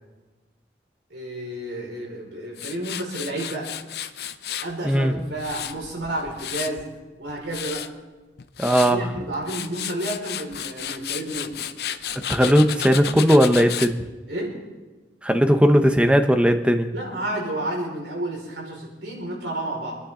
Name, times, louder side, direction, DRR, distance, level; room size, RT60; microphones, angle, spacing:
voice 1, 1.1-3.7 4.6-6.9 7.2-7.8 8.7-11.5 14.3-14.5 16.9-20.0, right 1 dB, 85° right, -2 dB, 5.2 m, -31 dB
Tools, 2.6-4.7 5.2-6.8 7.3-7.9 8.4-8.9 9.3-13.9, left 10 dB, 60° left, 0.7 m, -32 dB
voice 2, 4.8-5.1 8.6-9.0 12.3-14.0 15.2-16.9, equal, 5° right, 7 dB, 0.9 m, -18 dB
28.0 x 10.0 x 3.9 m, 1.2 s
head